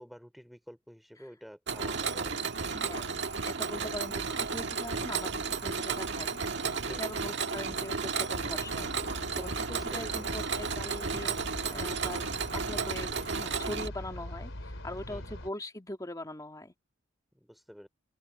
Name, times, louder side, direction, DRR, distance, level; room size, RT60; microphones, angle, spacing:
voice 1, 0.0-2.4 3.8-4.0 6.9-7.3 9.6-10.3 15.1-15.4 17.3-17.9, equal, ahead, 3.6 m, -50 dB
Mechanisms, 1.7-13.9, right 5 dB, 60° right, 1.7 m, -33 dB
voice 2, 2.7-6.4 6.9-16.7, left 1 dB, 20° left, 2.4 m, -42 dB
sound 1, 8.3-15.5, left 1 dB, 75° left, 4.1 m, -43 dB
head